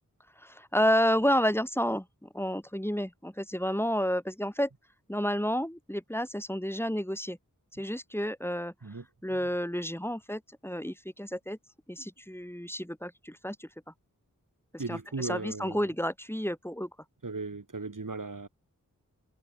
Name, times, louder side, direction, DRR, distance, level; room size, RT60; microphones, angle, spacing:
voice 1, 0.4-4.7 5.1-7.4 7.8-8.7 9.2-11.6 11.9-13.7 14.7-16.9, equal, 5° left, 6.5 m, -30 dB
voice 2, 14.8-15.9 17.2-18.5, right 3 dB, 75° right, 6.4 m, -37 dB
wide cardioid pair, 55°, 32 cm